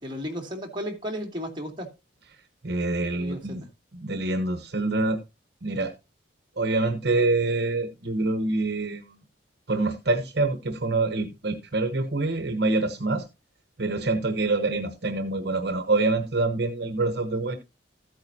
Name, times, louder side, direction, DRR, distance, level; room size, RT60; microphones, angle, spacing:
voice 1, 0.0-1.9 3.1-3.7, equal, 25° right, 2.6 m, -34 dB
voice 2, 2.6-3.6 3.9-5.2 5.6-5.9 6.6-9.2 9.7-13.2 13.8-17.6, right 2 dB, 55° right, 1.0 m, -26 dB
14.0 x 8.9 x 2.8 m
head